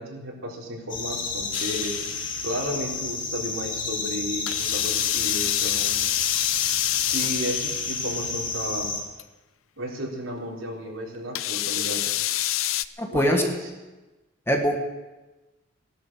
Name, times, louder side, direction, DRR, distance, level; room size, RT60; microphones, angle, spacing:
voice 1, 0.0-1.9 2.4-6.0 7.0-8.9 9.8-12.2 13.1-13.6, equal, 80° right, -2 dB, 3.9 m, -33 dB
sound 1, 0.9-9.0, left 3 dB, 40° left, 2.8 m, -31 dB
sound 2, 1.5-2.7 4.5-8.5 9.2-9.3 11.4-12.9, left 14 dB, 85° left, 0.6 m, -27 dB
voice 2, 13.0-13.4 14.5-14.8, equal, 10° left, 3 dB, 1.5 m, -22 dB
18.0 x 12.0 x 6.3 m, 1.1 s
head